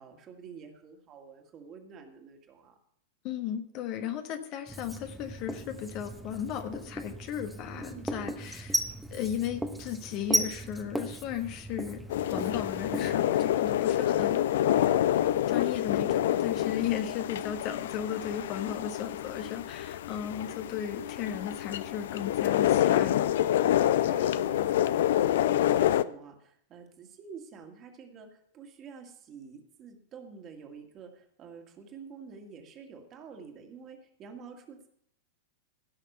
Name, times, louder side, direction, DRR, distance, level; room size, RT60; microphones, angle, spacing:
voice 1, 0.0-2.7 7.7-8.3 14.2-14.6 24.0-28.3 28.5-34.9, right 5 dB, 30° right, 3 dB, 2.2 m, -48 dB
voice 2, 3.2-8.8 9.1-14.5 15.5-23.4, left 9 dB, 40° left, 7 dB, 1.2 m, -35 dB
Writing, 4.7-13.1, right 1 dB, 5° right, 1.1 m, -36 dB
sound 1, 12.1-26.0, left 12 dB, 55° left, 0.5 m, -27 dB
16.5 x 6.5 x 5.7 m, 0.67 s
figure-of-eight pair, 90°, 0 cm